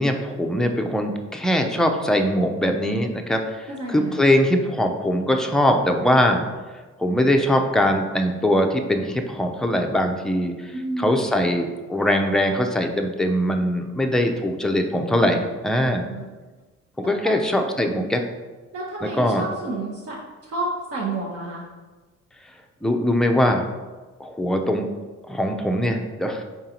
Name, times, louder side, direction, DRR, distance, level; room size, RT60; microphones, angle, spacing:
voice 1, 0.0-6.4 7.0-16.1 17.1-18.2 19.0-19.4 22.8-23.7 24.2-24.9 25.3-26.4, left 1 dB, ahead, 3 dB, 0.4 m, -22 dB
voice 2, 3.8-4.2 10.7-11.3 16.0-16.4 17.0-17.3 18.7-21.6, right 2 dB, 50° right, -4 dB, 0.9 m, -30 dB
4.7 x 3.7 x 2.9 m, 1.3 s
cardioid pair, 90°, 30 cm